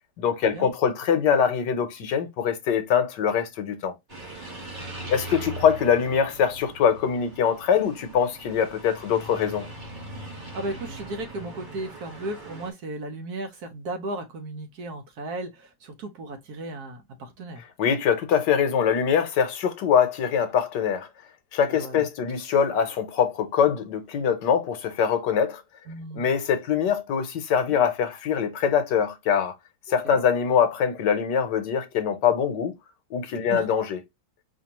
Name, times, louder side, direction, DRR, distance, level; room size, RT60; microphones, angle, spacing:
voice 1, 0.2-3.9 5.1-9.7 17.8-21.1 21.5-25.6 26.2-29.5 29.9-32.7 33.1-34.0, left 7 dB, 65° left, 1.3 m, -23 dB
sound 1, 4.1-12.7, right 1 dB, 25° right, 1.7 m, -40 dB
voice 2, 10.5-17.6 21.7-22.0 25.9-26.3 27.7-27.9 30.0-30.2 33.5-33.7, right 2 dB, 60° right, 1.2 m, -35 dB
4.4 x 2.8 x 2.8 m
omnidirectional pair, 2.1 m